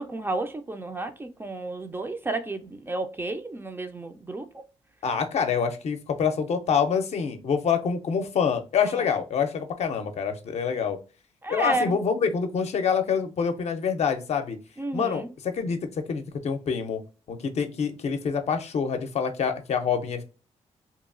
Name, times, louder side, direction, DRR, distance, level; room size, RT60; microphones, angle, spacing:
voice 1, 0.0-4.6 8.8-9.0 11.4-11.8 14.8-15.3, right 2 dB, 20° right, 0.4 m, -32 dB
voice 2, 5.0-11.0 11.5-14.6 14.9-15.8 16.1-17.0 17.3-20.2, left 6 dB, 60° left, 0.5 m, -26 dB
2.8 x 2.3 x 2.4 m
cardioid pair, 85°, 12 cm